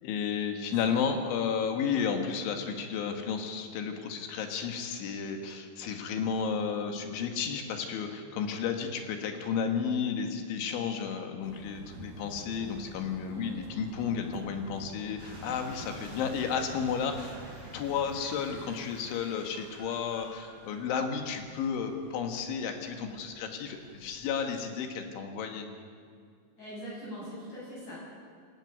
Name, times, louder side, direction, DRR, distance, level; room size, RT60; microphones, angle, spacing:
voice 1, 0.0-17.3 17.7-25.7, left 6 dB, 90° left, 5 dB, 4.2 m, -32 dB
sound 1, 11.4-18.7, right 2 dB, 60° right, 3.9 m, -48 dB
sound 2, 15.2-24.2, right 1 dB, 15° right, 4.6 m, -52 dB
voice 2, 26.6-28.0, equal, 40° left, -6 dB, 9.1 m, -42 dB
27.5 x 13.0 x 9.5 m, 2.3 s
omnidirectional pair, 5.3 m